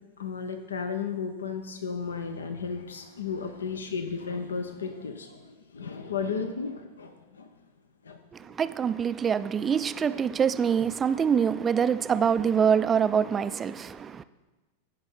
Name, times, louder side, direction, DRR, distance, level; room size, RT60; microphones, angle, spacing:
voice 1, 0.2-7.5 8.0-8.6, left 5 dB, 70° left, 0.7 m, -34 dB
voice 2, 8.3-14.2, right 7 dB, 20° right, 0.3 m, -25 dB
16.0 x 5.4 x 4.3 m
figure-of-eight pair, 90°, 0 cm